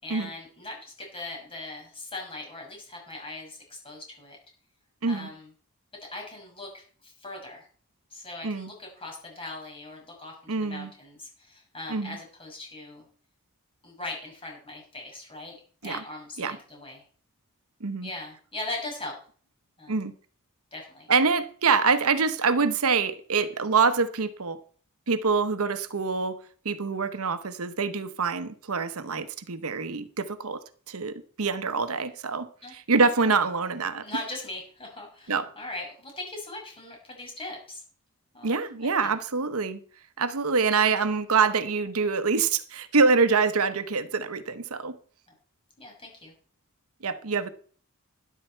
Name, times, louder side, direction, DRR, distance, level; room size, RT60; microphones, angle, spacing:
voice 1, 0.0-4.4 5.1-5.5 6.1-7.7 8.1-13.0 13.8-15.5 15.8-17.0 18.0-19.1 19.8-20.0 20.7-21.1 32.6-32.7 33.0-33.3 34.0-37.8 38.3-39.1 45.8-46.3, left 2 dB, 25° left, 6.3 m, -40 dB
voice 2, 10.5-10.9 11.9-12.2 15.8-16.0 16.4-16.6 17.8-18.1 19.9-20.1 21.1-24.6 25.1-34.0 35.3-35.5 38.4-39.8 40.2-45.0 47.0-47.5, right 4 dB, 70° right, 1.0 m, -25 dB
12.5 x 11.0 x 4.4 m
head